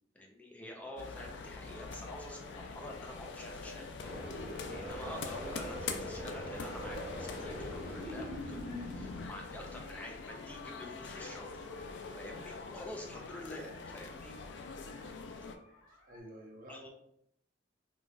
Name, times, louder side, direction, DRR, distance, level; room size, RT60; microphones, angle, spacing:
voice 1, 0.1-3.8 4.5-11.5 12.2-14.3 16.7-16.8, left 1 dB, 10° left, 0 dB, 0.5 m, -47 dB
sound 1, 0.8-16.2, left 2 dB, 90° left, 1.1 m, -59 dB
sound 2, 1.0-15.6, left 4 dB, 70° left, 0.3 m, -45 dB
sound 3, 4.0-9.3, left 1 dB, 50° left, 0.8 m, -41 dB
voice 2, 15.9-16.9, equal, 50° right, 0 dB, 0.7 m, -51 dB
3.9 x 2.4 x 2.3 m, 0.72 s
head